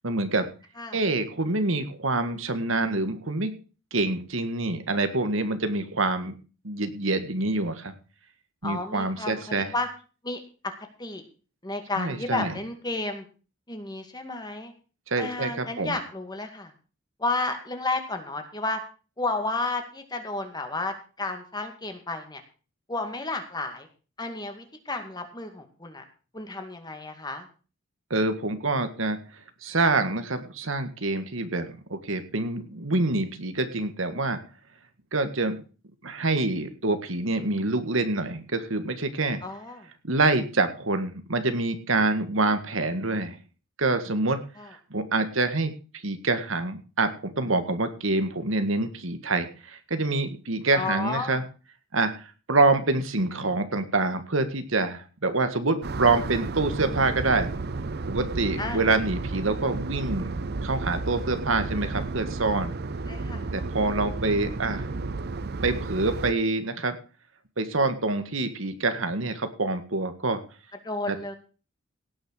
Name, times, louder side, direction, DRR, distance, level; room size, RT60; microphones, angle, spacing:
voice 1, 0.0-0.5 0.9-3.5 3.9-6.3 6.6-7.9 8.6-9.7 12.0-12.5 15.1-16.0 28.1-29.2 29.6-34.4 35.1-35.6 36.0-39.4 40.0-43.4 43.8-44.4 44.9-45.7 46.0-51.4 51.9-57.5 58.1-60.3 60.6-62.7 63.5-64.9 65.6-67.0 67.6-70.4 71.1-71.2, right 2 dB, 80° right, 9 dB, 1.8 m, -26 dB
voice 2, 8.6-9.9 10.2-10.7 11.0-11.2 11.6-13.2 13.7-14.7 15.2-16.7 17.2-18.8 19.2-22.4 22.9-23.9 24.2-26.0 26.3-27.5 39.4-39.9 44.6-44.7 50.7-51.4 58.6-58.8 63.1-63.5 70.8-71.3, left 2 dB, 20° left, 5 dB, 2.2 m, -32 dB
sound 1, 55.8-66.3, right 3 dB, 50° right, 0.6 m, -32 dB
17.5 x 6.6 x 6.4 m, 0.36 s
head